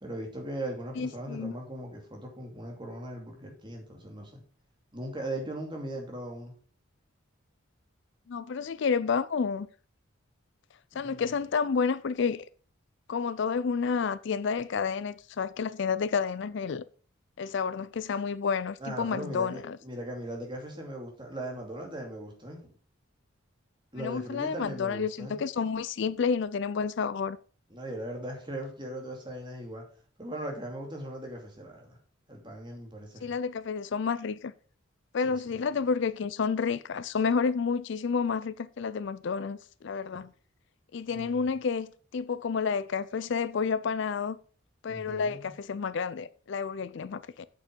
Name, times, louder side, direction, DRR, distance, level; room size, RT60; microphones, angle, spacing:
voice 1, 0.0-4.4 4.9-6.5 10.9-11.3 18.8-22.7 23.9-25.4 27.7-29.8 30.2-32.0 32.3-33.4 35.2-35.5 40.1-40.2 41.1-41.4 44.9-45.5, right 1 dB, 20° right, 2.5 m, -39 dB
voice 2, 1.0-1.5 8.3-9.7 10.9-12.4 13.1-16.8 17.4-19.8 24.0-27.4 33.2-34.5 35.1-40.3 40.9-44.4 44.8-47.5, left 5 dB, 55° left, 0.4 m, -30 dB
8.7 x 6.7 x 5.2 m
head